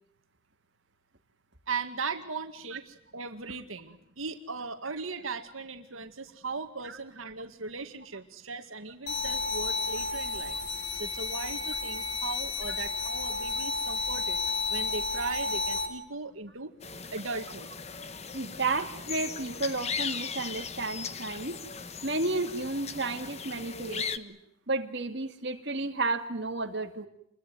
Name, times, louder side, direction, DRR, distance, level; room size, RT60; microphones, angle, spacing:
voice 1, 1.7-10.6 11.0-14.4 14.7-16.7 17.1-17.7, right 4 dB, 85° right, 7 dB, 2.1 m, -38 dB
sound 1, 9.1-15.9, left 3 dB, 55° left, 5.0 m, -32 dB
sound 2, 16.8-24.2, left 6 dB, 30° left, 1.2 m, -38 dB
voice 2, 18.3-21.6 22.0-24.4 24.7-27.1, right 3 dB, 55° right, 4 dB, 2.3 m, -32 dB
28.0 x 22.0 x 9.5 m, 0.75 s
head